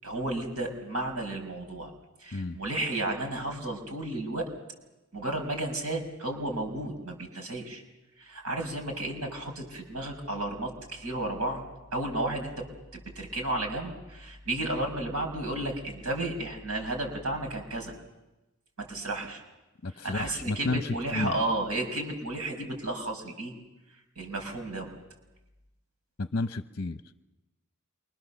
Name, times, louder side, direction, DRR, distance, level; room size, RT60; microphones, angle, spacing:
voice 1, 0.0-1.9 2.2-4.5 5.1-7.8 8.2-11.6 11.9-12.7 12.9-17.9 18.8-19.4 20.0-23.5 24.2-24.9, right 2 dB, 80° right, 4 dB, 6.0 m, -33 dB
voice 2, 19.8-21.3 26.2-27.2, left 2 dB, 45° left, 9 dB, 0.8 m, -32 dB
28.0 x 24.5 x 7.1 m, 1.0 s
head